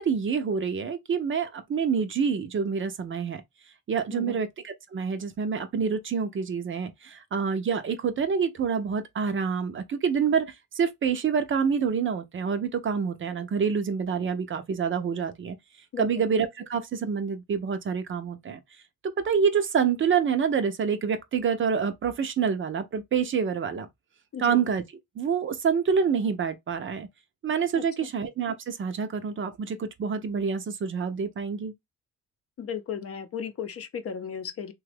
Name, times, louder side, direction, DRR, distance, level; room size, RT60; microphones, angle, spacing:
voice 1, 0.0-3.4 3.9-15.6 16.0-18.6 19.0-23.9 24.4-24.8 25.2-27.1 27.4-31.7, right 6 dB, 40° right, 0.6 m, -27 dB
voice 2, 32.6-34.7, left 7 dB, 50° left, 0.6 m, -35 dB
3.0 x 2.3 x 3.3 m
cardioid pair, 90°, 30 cm